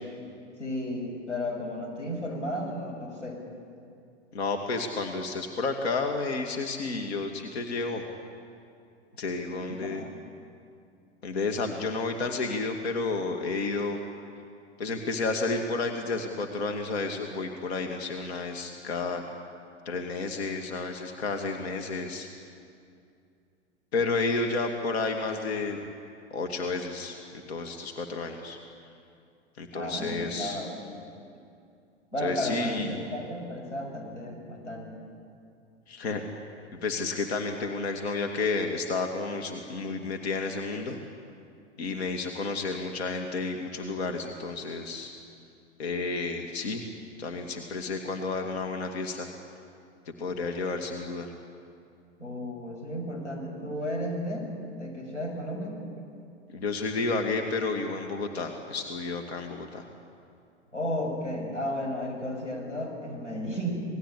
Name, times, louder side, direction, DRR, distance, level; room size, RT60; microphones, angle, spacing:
voice 1, 0.6-3.4 9.6-10.1 29.7-30.8 32.1-35.0 52.2-55.8 60.7-63.8, left 1 dB, 90° left, 0 dB, 6.9 m, -33 dB
voice 2, 4.3-8.0 9.2-10.0 11.2-14.0 14.8-19.2 19.9-22.3 23.9-25.9 26.3-28.6 29.6-30.6 32.2-33.0 35.9-36.2 36.8-41.0 41.8-45.1 45.8-46.8 47.2-49.3 50.2-51.3 56.5-59.8, left 3 dB, 60° left, 3 dB, 2.3 m, -31 dB
27.5 x 19.5 x 8.5 m, 2.4 s
figure-of-eight pair, 100°, 35 cm